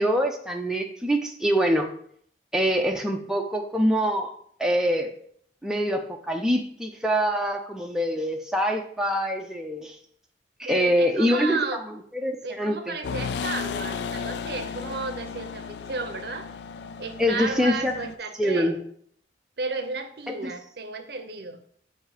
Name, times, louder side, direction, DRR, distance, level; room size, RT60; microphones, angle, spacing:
voice 1, 0.0-1.9 2.5-4.3 4.6-5.1 5.6-10.0 10.6-11.6 12.1-13.0 17.2-17.9 18.4-18.8 20.3-20.5, equal, 5° right, 1 dB, 0.5 m, -24 dB
voice 2, 10.6-11.8 12.4-16.5 17.0-18.8 19.6-21.6, right 3 dB, 65° right, 8 dB, 0.6 m, -33 dB
sound 1, 13.0-18.2, left 6 dB, 75° left, 0.3 m, -34 dB
7.6 x 2.7 x 4.8 m, 0.63 s
head